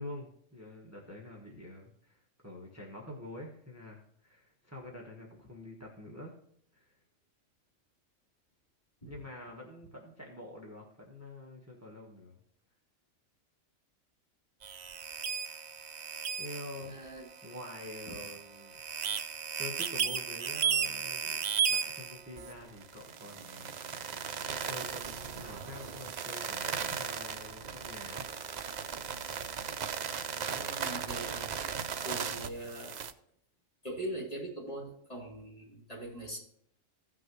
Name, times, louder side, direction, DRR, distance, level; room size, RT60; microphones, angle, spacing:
voice 1, 0.0-6.3 6.7-7.0 9.0-12.4 16.4-16.9 17.4-18.8 19.5-21.4 21.7-24.0 24.4-28.6, left 1 dB, 10° right, -2 dB, 1.3 m, -47 dB
sound 1, 14.6-33.1, right 7 dB, 55° right, 0.5 m, -36 dB
voice 2, 16.7-17.3 18.1-18.2 30.5-31.5 32.0-33.0 33.8-36.4, right 1 dB, 30° left, -4 dB, 3.3 m, -41 dB
16.0 x 6.0 x 3.1 m, 0.68 s
omnidirectional pair, 1.3 m